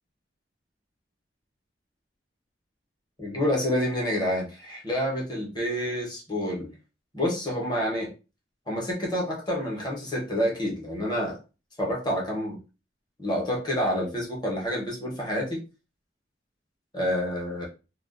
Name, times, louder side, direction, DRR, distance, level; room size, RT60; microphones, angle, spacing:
voice 1, 3.2-6.7 7.1-8.1 8.7-11.4 11.8-12.6 13.2-15.6 16.9-17.7, equal, 25° left, -2 dB, 0.8 m, -28 dB
2.3 x 2.2 x 2.4 m, 0.32 s
head